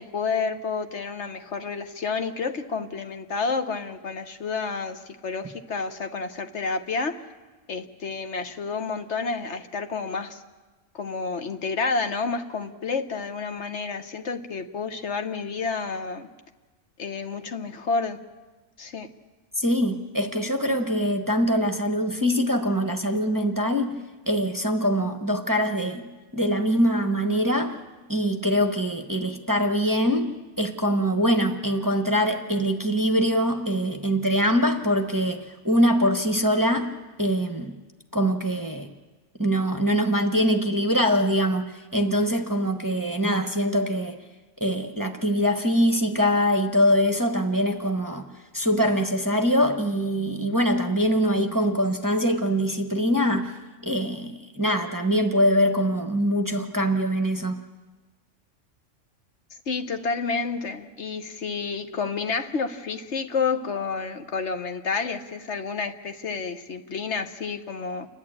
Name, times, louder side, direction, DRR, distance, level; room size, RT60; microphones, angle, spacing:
voice 1, 0.0-7.2 7.7-10.4 10.9-16.3 17.0-18.2 18.8-19.1 59.7-68.1, left 4 dB, 65° left, 7 dB, 1.3 m, -30 dB
voice 2, 19.6-24.0 24.3-26.0 26.3-27.8 28.1-30.3 30.6-36.9 37.2-37.7 38.1-38.9 39.4-44.2 44.6-48.2 48.5-53.5 53.8-57.6, equal, 15° right, 4 dB, 1.0 m, -23 dB
29.5 x 11.5 x 8.6 m, 1.3 s
omnidirectional pair, 1.3 m